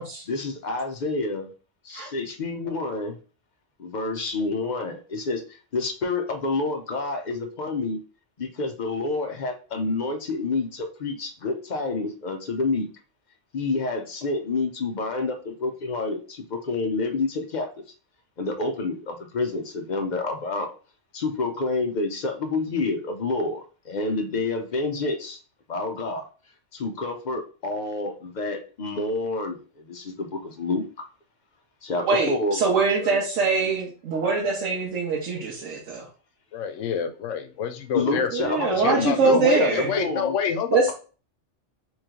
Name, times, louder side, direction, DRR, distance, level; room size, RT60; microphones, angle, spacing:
voice 1, 0.3-1.5 1.8-3.2 3.8-5.4 5.7-8.0 8.4-12.9 13.5-17.7 18.4-20.7 21.1-25.4 25.7-26.2 26.7-30.8 31.8-32.6 32.9-33.4 37.9-39.7 40.0-40.4, left 3 dB, 50° left, 4 dB, 0.6 m, -28 dB
voice 2, 32.0-36.1 38.3-39.9 40.7-40.9, right 4 dB, 85° right, -3 dB, 1.2 m, -23 dB
voice 3, 36.5-38.6 38.8-40.9, left 6 dB, 85° left, 8 dB, 0.9 m, -27 dB
3.1 x 3.0 x 3.6 m, 0.38 s
omnidirectional pair, 1.3 m